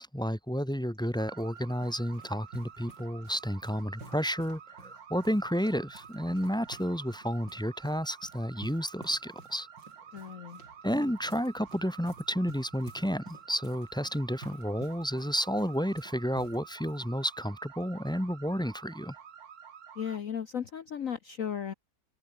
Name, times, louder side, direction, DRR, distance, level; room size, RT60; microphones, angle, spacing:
voice 1, 0.0-9.7 10.8-19.1, equal, ahead, 1.7 m, -31 dB
sound 1, 0.9-17.1, right 2 dB, 75° right, 7.8 m, -53 dB
sound 2, 1.2-20.2, right 8 dB, 55° right, 1.8 m, -50 dB
voice 2, 10.1-10.6 20.0-21.7, left 8 dB, 50° left, 1.3 m, -35 dB
omnidirectional pair, 2.0 m